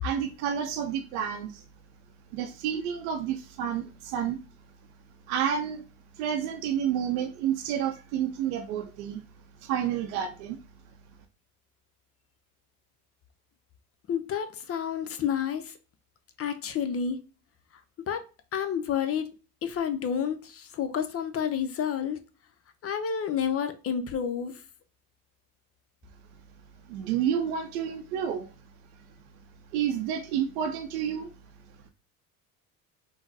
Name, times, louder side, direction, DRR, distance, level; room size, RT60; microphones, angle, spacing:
voice 1, 0.0-1.6 2.3-4.4 5.3-5.8 6.2-9.2 9.6-10.6 26.9-28.5 29.7-31.3, right 9 dB, 80° right, 0.6 m, -30 dB
voice 2, 14.1-15.7 16.4-17.2 18.1-18.2 18.5-19.3 19.6-22.2 22.8-24.6, left 8 dB, 35° left, 0.5 m, -29 dB
3.8 x 2.1 x 2.6 m
hypercardioid pair, 70°, 43 cm